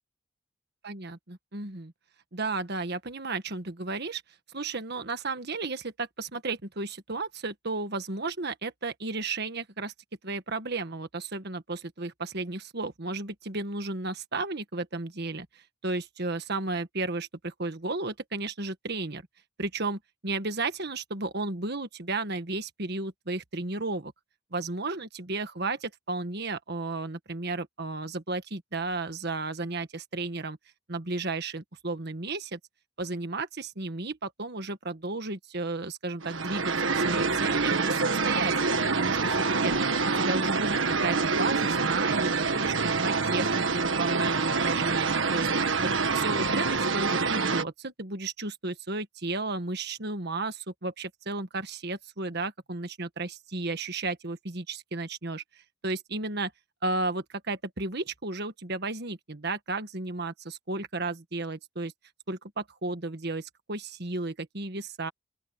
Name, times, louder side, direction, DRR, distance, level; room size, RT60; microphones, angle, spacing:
voice 1, 0.8-1.9 2.3-4.2 4.5-9.9 10.2-15.5 15.8-19.2 19.6-24.1 24.5-30.6 30.9-32.6 33.0-39.9 40.1-55.4 55.8-56.5 56.8-61.9 62.3-65.1, right 3 dB, 50° right, 1.5 m, -33 dB
sound 1, 36.2-47.6, right 4 dB, 65° right, 1.6 m, -26 dB
open air
head